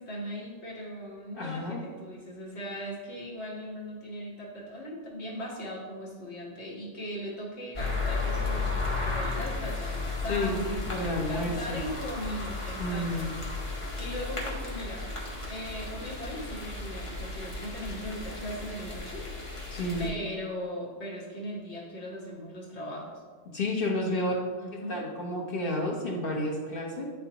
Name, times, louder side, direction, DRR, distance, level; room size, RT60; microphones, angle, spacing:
voice 1, 0.0-13.3 13.9-15.1 15.5-19.3 20.0-23.2 24.1-25.0, equal, 70° left, -5 dB, 1.7 m, -39 dB
voice 2, 1.3-1.8 10.3-11.8 12.8-13.3 19.7-20.2 23.5-24.3 24.9-27.1, left 1 dB, 50° left, -2 dB, 1.3 m, -31 dB
sound 1, 7.7-20.1, left 3 dB, 30° left, 1.0 m, -34 dB
9.9 x 3.5 x 2.9 m, 1.5 s
omnidirectional pair, 1.2 m